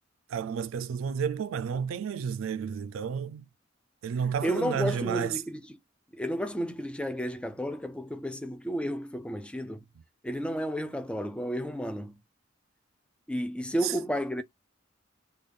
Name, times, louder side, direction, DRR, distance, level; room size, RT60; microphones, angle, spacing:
voice 1, 0.3-3.5 4.0-5.4 13.8-13.9, right 7 dB, 80° right, 0.3 m, -31 dB
voice 2, 4.4-5.6 6.1-9.8 10.2-12.1 13.3-14.4, equal, 5° left, 0.3 m, -32 dB
3.3 x 2.3 x 3.6 m
head